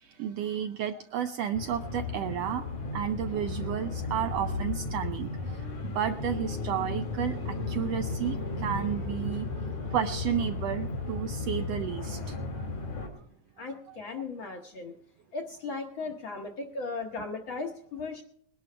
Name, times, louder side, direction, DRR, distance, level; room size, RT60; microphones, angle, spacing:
voice 1, 0.0-2.6 2.9-5.7 5.9-12.7 13.0-13.1, right 9 dB, 80° right, 8 dB, 1.5 m, -32 dB
sound 1, 1.5-13.1, left 3 dB, 90° left, 4.1 m, -34 dB
voice 2, 13.6-14.9 15.3-18.2, left 3 dB, 60° left, 3 dB, 1.3 m, -37 dB
21.0 x 11.5 x 3.3 m, 0.67 s
omnidirectional pair, 3.4 m